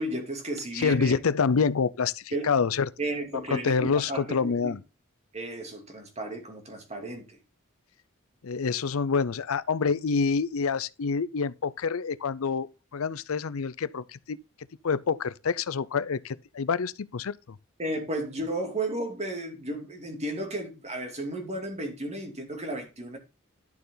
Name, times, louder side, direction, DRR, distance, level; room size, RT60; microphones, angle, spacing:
voice 1, 0.0-1.2 2.3-2.5 3.0-4.7 5.3-7.4 17.8-23.2, right 1 dB, 30° right, 2.7 m, -33 dB
voice 2, 0.7-2.9 3.5-4.8 8.4-12.7 12.9-14.4 14.8-17.4, left 5 dB, 70° left, 0.5 m, -27 dB
11.5 x 6.8 x 3.8 m
head